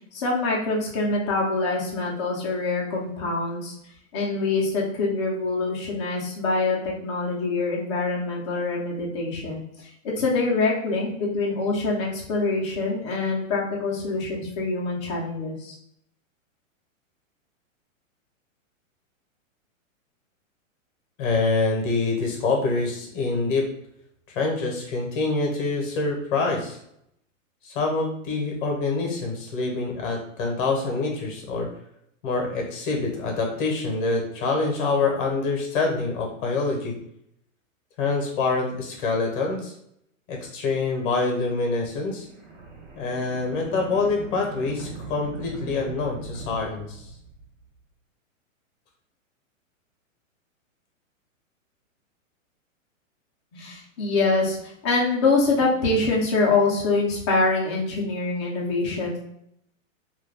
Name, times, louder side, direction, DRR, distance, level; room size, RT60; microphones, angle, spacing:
voice 1, 0.1-3.7 4.1-15.7 53.5-59.2, left 3 dB, 20° left, -4 dB, 0.5 m, -25 dB
voice 2, 21.2-23.6 24.3-26.8 27.6-31.7 32.2-37.0 38.0-39.7 40.3-42.3 42.9-47.1, left 3 dB, 40° left, 1 dB, 0.8 m, -26 dB
sound 1, 41.8-47.6, right 4 dB, 65° right, 0.9 m, -40 dB
2.4 x 2.1 x 3.3 m, 0.74 s
hypercardioid pair, 155°, 40 cm